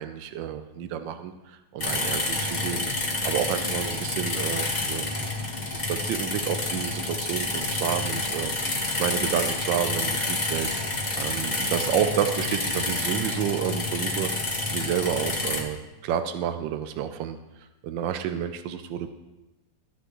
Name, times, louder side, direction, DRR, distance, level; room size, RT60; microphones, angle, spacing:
voice 1, 0.0-17.4 17.8-19.1, right 9 dB, 85° right, 9 dB, 1.3 m, -30 dB
sound 1, 1.8-15.6, left 2 dB, 25° left, 1.3 m, -28 dB
12.5 x 10.0 x 3.0 m, 1.0 s
omnidirectional pair, 2.0 m